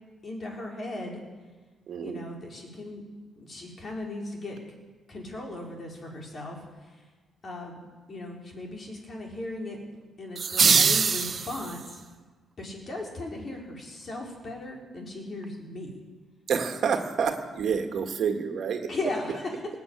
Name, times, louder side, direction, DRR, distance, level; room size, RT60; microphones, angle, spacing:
voice 1, 0.2-1.2 2.0-3.0 3.4-4.8 5.1-7.1 7.4-9.8 10.2-12.0 12.6-16.0 18.9-19.7, left 2 dB, 45° left, -1 dB, 4.2 m, -37 dB
voice 2, 1.9-2.2 16.5-18.9, right 6 dB, 60° right, 5 dB, 1.7 m, -28 dB
sound 1, 10.4-11.9, right 6 dB, 45° right, 0.5 m, -23 dB
19.0 x 7.3 x 9.0 m, 1.3 s
cardioid pair, 90°, 0 cm